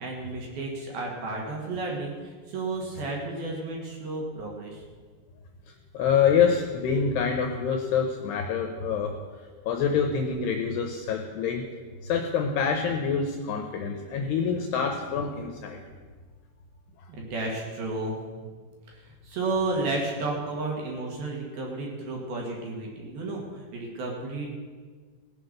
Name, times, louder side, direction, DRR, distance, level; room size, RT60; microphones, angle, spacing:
voice 1, 0.0-4.8 17.1-18.2 18.9-24.5, right 2 dB, 60° right, -1 dB, 3.2 m, -32 dB
voice 2, 5.9-9.1 9.7-11.6 12.0-15.8 17.0-17.1, left 6 dB, 75° left, 4 dB, 2.5 m, -26 dB
18.0 x 7.8 x 6.6 m, 1.5 s
omnidirectional pair, 5.6 m